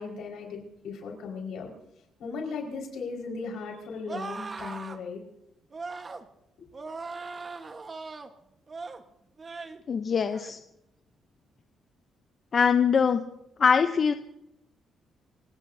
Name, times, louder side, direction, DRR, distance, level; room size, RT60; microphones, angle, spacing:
voice 1, 0.0-1.7 2.2-5.2 6.6-6.7, left 4 dB, 80° left, 1 dB, 5.2 m, -37 dB
sound 1, 4.1-5.0 5.7-6.2 6.7-8.3 8.7-9.0 9.4-9.8 10.2-10.5, right 4 dB, 35° right, 1.4 m, -39 dB
voice 2, 9.9-10.6 12.5-13.2 13.6-14.1, left 6 dB, 45° left, 8 dB, 0.8 m, -22 dB
27.5 x 18.0 x 2.8 m, 0.83 s
cardioid pair, 90°, 0 cm